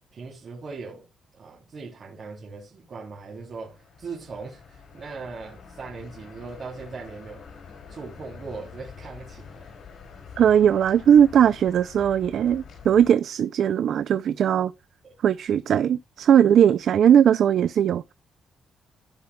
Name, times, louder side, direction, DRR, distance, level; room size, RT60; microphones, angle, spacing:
voice 1, 0.1-1.1 1.4-7.5 7.9-9.6, right 4 dB, 50° right, 3.2 m, -39 dB
sound 1, 3.3-13.1, left 6 dB, 65° left, 4.7 m, -46 dB
voice 2, 10.4-14.7 15.2-18.1, right 9 dB, 65° right, 0.4 m, -19 dB
16.0 x 5.7 x 2.3 m
cardioid pair, 90°, 0 cm